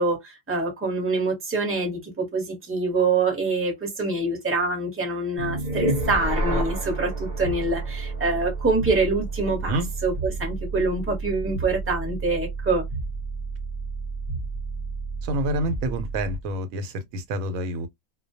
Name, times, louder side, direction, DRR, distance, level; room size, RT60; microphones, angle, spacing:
voice 1, 0.0-12.8, right 3 dB, 10° right, 0.7 m, -25 dB
sound 1, 5.4-16.5, right 2 dB, 45° right, 0.5 m, -30 dB
voice 2, 15.2-17.9, right 1 dB, 85° right, 1.0 m, -28 dB
2.3 x 2.1 x 2.6 m
omnidirectional pair, 1.4 m